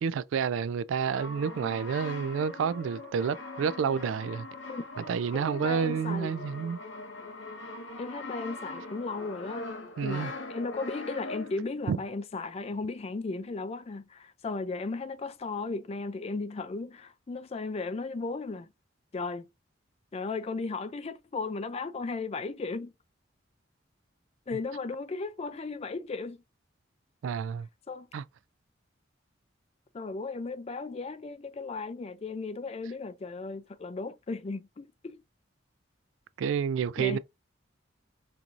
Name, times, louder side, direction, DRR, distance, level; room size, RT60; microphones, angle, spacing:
voice 1, 0.0-4.5 5.0-6.8 10.0-10.3 11.9-12.0 27.2-27.7 28.1-28.2 36.4-37.2, right 6 dB, 80° right, 0.3 m, -29 dB
Brass instrument, 0.9-11.8, left 2 dB, 70° left, 0.8 m, -42 dB
voice 2, 5.5-6.3 8.0-9.7 10.0-18.7 19.1-19.5 20.1-22.9 24.5-26.4 27.9-28.1 29.9-35.2 37.0-37.2, left 3 dB, 30° left, 0.4 m, -35 dB
4.5 x 2.6 x 2.4 m
head